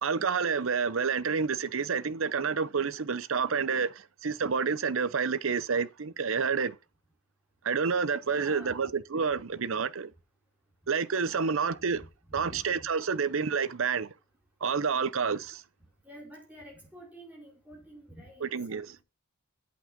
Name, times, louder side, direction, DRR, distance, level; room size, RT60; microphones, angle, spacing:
voice 1, 0.0-6.8 7.6-10.1 10.9-12.0 12.3-14.1 14.6-15.6 18.5-18.9, right 5 dB, 70° right, 0.7 m, -29 dB
voice 2, 8.3-8.8 9.3-9.4 11.3-12.9 16.0-19.0, right 1 dB, 5° right, 4.2 m, -49 dB
8.6 x 8.2 x 5.9 m
head